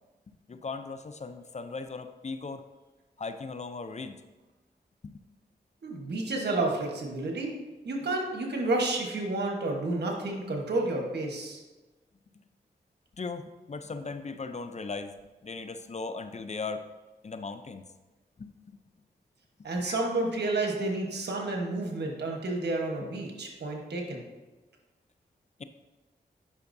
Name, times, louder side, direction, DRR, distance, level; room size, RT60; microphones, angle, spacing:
voice 1, 0.5-2.6 3.2-4.2 5.0-5.2 13.2-15.1 15.4-16.8 17.2-17.8 18.4-18.8 19.8-20.0, left 4 dB, 45° left, 10 dB, 0.5 m, -38 dB
voice 2, 5.8-7.5 7.8-11.6 19.6-24.2, right 2 dB, 80° right, 1 dB, 1.2 m, -30 dB
9.7 x 5.7 x 2.7 m, 1.2 s
cardioid pair, 45°, 17 cm